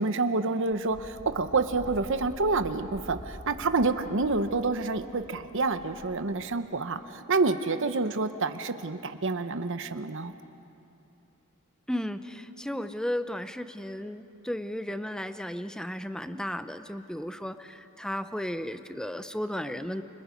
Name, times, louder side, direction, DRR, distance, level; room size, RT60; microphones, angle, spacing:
voice 1, 0.0-10.3, right 3 dB, 60° right, 9 dB, 0.9 m, -28 dB
Wind, 0.7-6.6, equal, 30° left, 3.2 m, -47 dB
voice 2, 11.9-20.0, equal, 5° left, 10 dB, 0.7 m, -34 dB
29.5 x 25.5 x 5.2 m, 2.8 s
head